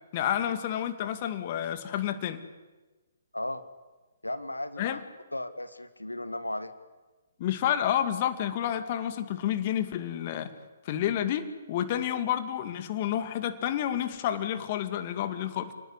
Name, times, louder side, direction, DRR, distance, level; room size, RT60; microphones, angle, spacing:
voice 1, 0.1-2.4 4.8-5.0 7.4-10.5 10.8-15.7, left 10 dB, 40° left, 9 dB, 2.4 m, -30 dB
voice 2, 4.2-5.0 5.3-6.7, left 1 dB, 90° left, 10 dB, 1.9 m, -35 dB
29.5 x 19.0 x 9.9 m, 1.2 s
figure-of-eight pair, 130°, 0 cm